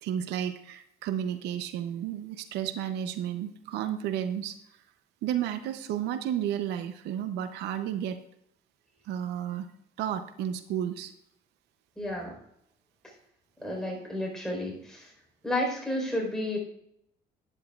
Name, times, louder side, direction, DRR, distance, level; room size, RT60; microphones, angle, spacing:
voice 1, 0.0-4.6 5.2-8.2 9.1-9.7 10.0-11.1, right 10 dB, 85° right, 10 dB, 0.7 m, -32 dB
voice 2, 12.0-12.3 13.6-15.1 15.4-16.6, left 1 dB, 5° left, -1 dB, 4.2 m, -31 dB
11.5 x 10.0 x 2.4 m, 0.73 s
cardioid pair, 110°, 17 cm